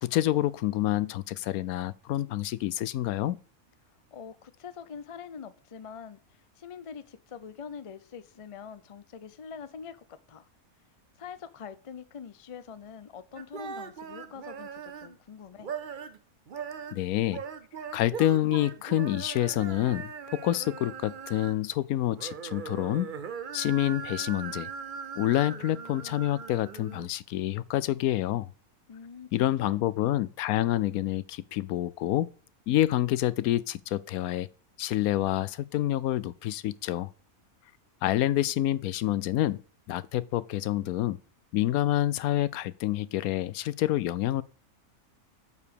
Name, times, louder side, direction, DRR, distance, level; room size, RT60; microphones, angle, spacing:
voice 1, 0.0-3.4 16.9-17.4 17.9-23.1 23.5-24.7 25.2-28.5 29.3-32.3 32.7-34.5 34.8-37.1 38.0-39.6 39.9-41.2 41.5-44.4, left 13 dB, 80° left, 1.0 m, -27 dB
voice 2, 4.1-10.5 11.2-15.7 28.9-29.8, left 6 dB, 50° left, 0.4 m, -44 dB
sound 1, 13.4-15.2 15.6-16.2 16.5-21.7 22.0-27.1, right 6 dB, 45° right, 0.7 m, -40 dB
8.2 x 4.9 x 6.8 m
omnidirectional pair, 1.5 m